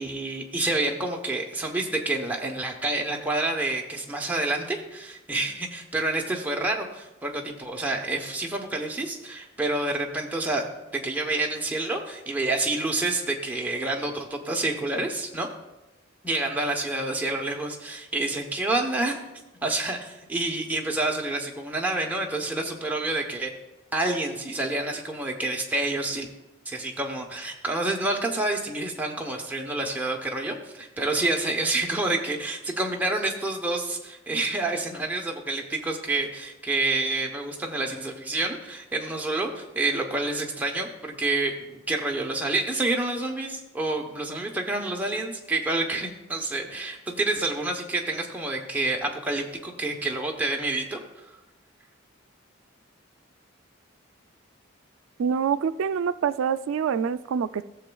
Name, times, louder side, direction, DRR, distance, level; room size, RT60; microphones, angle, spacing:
voice 1, 0.0-10.6 10.9-15.5 16.2-19.2 19.6-23.5 23.9-26.3 26.7-51.0, right 2 dB, 10° right, 0 dB, 0.8 m, -28 dB
voice 2, 55.2-57.6, right 7 dB, 80° right, 14 dB, 0.3 m, -26 dB
15.5 x 6.9 x 2.3 m, 1.0 s
head